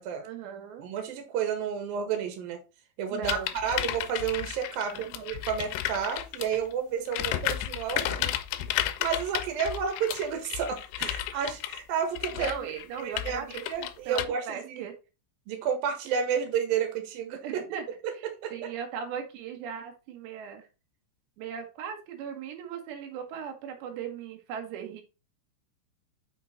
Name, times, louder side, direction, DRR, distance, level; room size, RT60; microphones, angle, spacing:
voice 1, 0.2-0.8 3.1-3.5 4.9-5.2 8.2-8.8 11.0-11.1 12.3-14.9 17.4-17.9 18.5-20.6 21.4-25.0, right 8 dB, 85° right, 4 dB, 3.5 m, -38 dB
voice 2, 0.8-2.6 3.0-8.3 9.0-12.7 13.0-14.9 15.5-17.4 18.4-18.7, right 7 dB, 65° right, 5 dB, 3.1 m, -31 dB
sound 1, 3.2-6.6 7.1-14.3, left 13 dB, 85° left, 2.8 m, -33 dB
7.3 x 5.5 x 3.8 m, 0.30 s
omnidirectional pair, 4.8 m